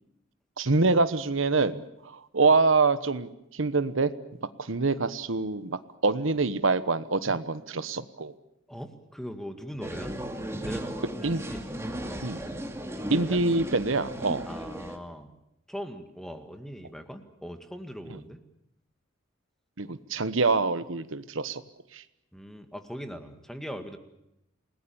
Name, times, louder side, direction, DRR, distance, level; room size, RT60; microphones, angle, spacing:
voice 1, 0.6-1.8 2.1-4.1 4.6-8.3 11.2-11.4 12.2-12.4 13.1-14.5 19.8-21.6 21.9-22.0, right 3 dB, 75° right, 13 dB, 1.1 m, -25 dB
voice 2, 8.7-10.2 10.6-10.9 11.5-11.6 12.1-12.3 12.9-13.4 14.5-15.3 15.7-18.4 22.3-24.0, equal, ahead, 7 dB, 2.0 m, -40 dB
sound 1, 9.8-15.0, right 1 dB, 15° right, 2.4 m, -36 dB
29.0 x 19.5 x 7.1 m, 0.81 s
head